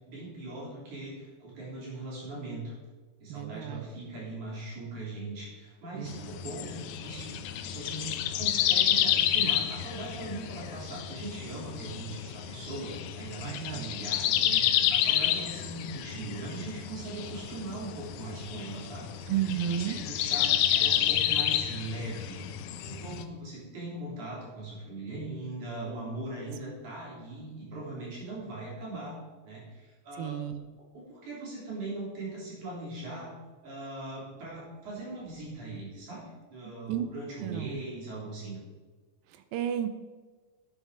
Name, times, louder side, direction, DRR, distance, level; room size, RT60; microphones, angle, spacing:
voice 1, 0.1-2.7 3.2-14.6 14.9-19.3 19.7-22.4 22.9-29.2 29.4-30.3 30.9-33.3 33.6-38.6, right 2 dB, 55° right, -5 dB, 5.2 m, -40 dB
voice 2, 3.3-3.9 5.9-6.4 13.4-13.9 19.3-20.0 26.7-26.8 30.1-30.6 36.6-37.1 37.4-37.8 39.3-39.9, right 10 dB, 80° right, 10 dB, 2.4 m, -33 dB
sound 1, 6.1-23.2, left 11 dB, 75° left, 1.8 m, -30 dB
12.0 x 8.6 x 5.0 m, 1.4 s
omnidirectional pair, 4.1 m